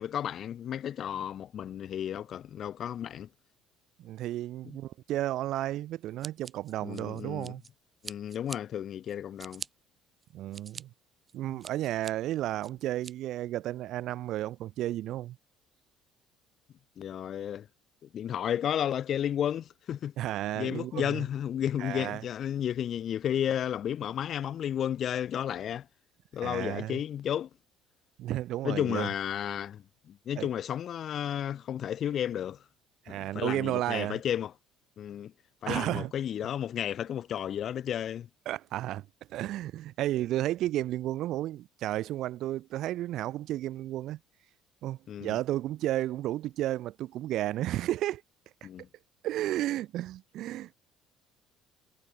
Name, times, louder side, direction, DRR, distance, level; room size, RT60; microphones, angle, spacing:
voice 1, 0.0-3.3 6.8-7.5 8.0-9.6 17.0-17.7 18.1-20.1 20.5-25.9 26.3-27.5 28.6-32.6 33.1-34.5 35.0-35.3 35.6-38.3 45.1-45.4 48.6-48.9, left 10 dB, 50° left, 0.4 m, -32 dB
voice 2, 4.0-7.6 10.3-10.9 11.3-15.4 20.2-21.2 21.8-22.2 26.4-27.0 28.2-29.1 30.4-30.5 33.1-34.2 35.7-36.1 38.5-39.0 39.3-44.2 44.8-48.2 49.2-50.9, right 14 dB, 65° right, 0.4 m, -32 dB
Scissors, 6.2-7.7 8.0-8.6 9.1-9.7 10.2-10.8 11.3-12.1 12.6-13.1, right 4 dB, 25° right, 0.8 m, -43 dB
supercardioid pair, 100°, 0 cm